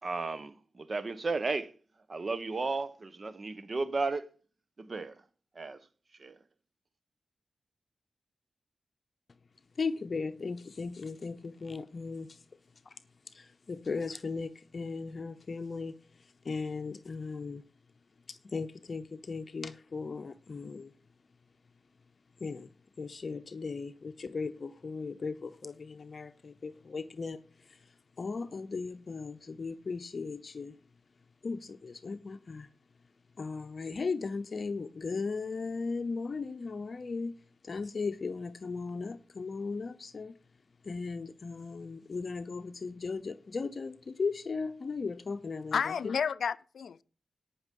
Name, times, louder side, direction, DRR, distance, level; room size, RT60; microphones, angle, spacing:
voice 1, 0.0-1.7 2.1-4.3 4.8-5.2 5.5-5.8 6.2-6.4, right 3 dB, 50° right, 1.1 m, -34 dB
voice 2, 9.8-12.4 12.9-13.0 13.3-15.9 16.4-17.6 18.3-20.9 22.4-22.7 23.0-27.4 27.7-27.8 28.2-30.8 31.4-32.7 33.4-37.3 37.6-40.3 40.8-45.9, left 4 dB, 55° left, 0.8 m, -37 dB
voice 3, 45.7-47.0, left 7 dB, 80° left, 0.5 m, -31 dB
17.5 x 6.1 x 5.4 m
cardioid pair, 65°, 0 cm